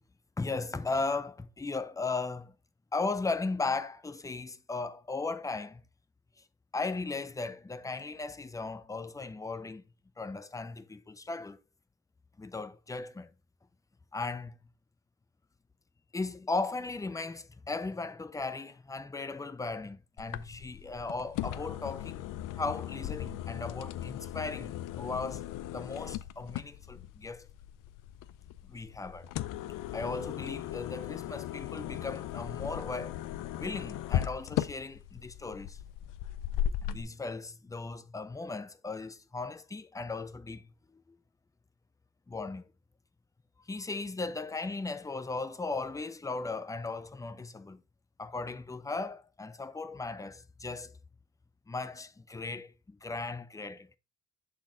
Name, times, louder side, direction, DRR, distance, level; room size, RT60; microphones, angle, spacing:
voice 1, 0.4-2.5 2.9-5.8 6.7-9.8 10.2-11.6 12.4-13.3 14.1-14.5 16.1-22.3 22.6-25.4 25.7-27.5 28.7-29.3 29.9-33.2 33.6-35.8 36.8-41.0 42.3-42.7 43.7-47.8 48.2-51.0 51.7-54.0, left 3 dB, 10° left, 0.5 m, -37 dB
sound 1, 20.2-37.0, left 12 dB, 70° left, 0.5 m, -37 dB
7.2 x 4.3 x 3.7 m
cardioid pair, 110°, 34 cm